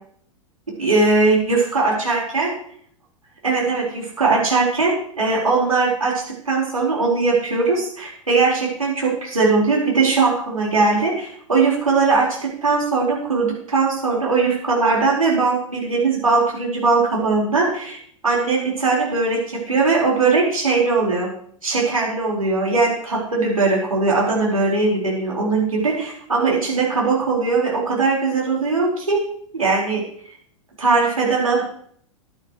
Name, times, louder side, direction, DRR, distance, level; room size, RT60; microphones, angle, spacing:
voice 1, 0.8-2.5 3.4-18.0 18.2-21.3 21.6-29.2 29.5-30.0 30.8-31.7, right 3 dB, 85° right, -4 dB, 4.8 m, -20 dB
15.5 x 11.5 x 3.2 m, 0.62 s
figure-of-eight pair, 95°, 17 cm